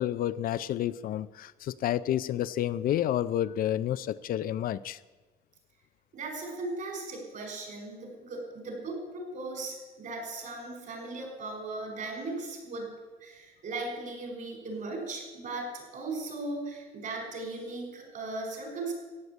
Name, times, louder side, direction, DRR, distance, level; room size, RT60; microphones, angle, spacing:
voice 1, 0.0-5.0, left 12 dB, 60° left, 0.5 m, -30 dB
voice 2, 6.1-12.9 13.2-18.9, right 2 dB, 50° right, 5.5 m, -37 dB
14.5 x 9.5 x 8.4 m
cardioid pair, 110°, 17 cm